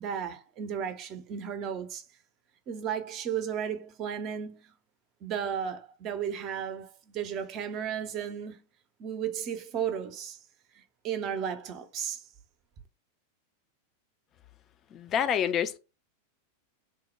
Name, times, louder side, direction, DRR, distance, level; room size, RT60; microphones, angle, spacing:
voice 1, 0.0-2.0 2.7-4.7 5.2-8.6 9.0-10.4 10.7-12.2, right 8 dB, 35° right, 0.6 m, -34 dB
voice 2, 14.9-15.8, left 9 dB, 30° left, 0.4 m, -27 dB
3.4 x 2.1 x 4.3 m
figure-of-eight pair, 90°, 0 cm